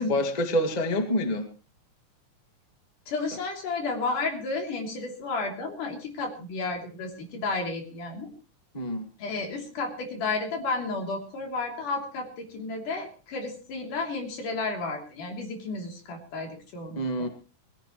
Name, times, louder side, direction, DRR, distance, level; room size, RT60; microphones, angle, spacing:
voice 1, 0.0-1.5 8.7-9.1 16.9-17.3, left 1 dB, 15° left, 6 dB, 1.6 m, -27 dB
voice 2, 3.1-8.3 9.2-17.3, left 3 dB, 80° left, 3 dB, 4.7 m, -32 dB
22.0 x 16.0 x 3.1 m, 0.33 s
omnidirectional pair, 3.7 m